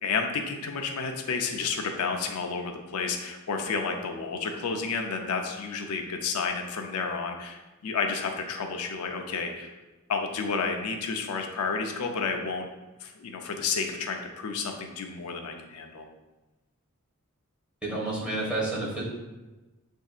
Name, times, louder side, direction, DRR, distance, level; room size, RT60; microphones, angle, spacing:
voice 1, 0.0-9.7 10.1-12.7 13.0-16.1, left 5 dB, 90° left, 3 dB, 0.5 m, -31 dB
voice 2, 17.8-19.0, right 2 dB, 5° right, -7 dB, 1.3 m, -30 dB
7.0 x 2.7 x 2.4 m, 1.1 s
head